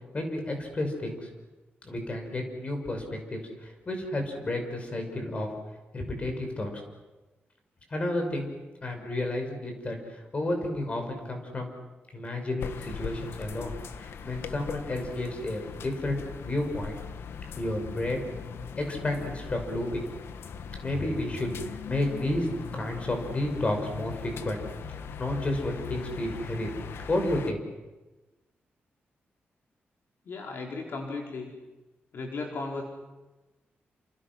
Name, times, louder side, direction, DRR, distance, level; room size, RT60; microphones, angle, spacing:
voice 1, 0.1-1.3 1.8-5.5 5.9-6.8 7.9-8.5 8.8-11.7 12.1-17.0 17.6-18.2 18.8-20.0 20.8-22.5 22.7-24.6 25.0-26.7 27.1-27.6, left 1 dB, 30° left, 4 dB, 6.0 m, -31 dB
sound 1, 12.6-27.5, left 6 dB, 80° left, 1.3 m, -40 dB
voice 2, 30.2-31.5 32.1-32.8, left 3 dB, 65° left, 0 dB, 4.6 m, -35 dB
29.0 x 28.0 x 6.2 m, 1.1 s
wide cardioid pair, 140°, 4 cm